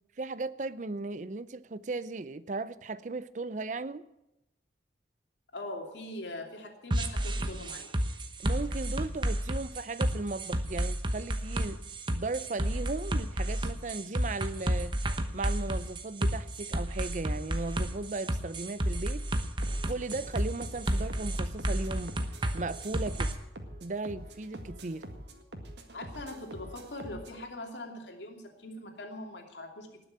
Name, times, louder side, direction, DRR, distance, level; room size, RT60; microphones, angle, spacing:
voice 1, 0.2-4.0 8.4-11.8 12.1-15.0 15.3-19.2 19.9-22.2 22.5-23.3 23.8-25.1, right 3 dB, 45° right, 16 dB, 0.5 m, -36 dB
voice 2, 5.5-8.1 25.9-30.1, left 1 dB, 80° left, 3 dB, 2.8 m, -42 dB
sound 1, 6.9-23.3, right 1 dB, 25° right, 1.0 m, -31 dB
sound 2, 19.6-27.4, right 1 dB, 75° right, 1.9 m, -46 dB
19.0 x 6.9 x 8.9 m, 0.90 s
head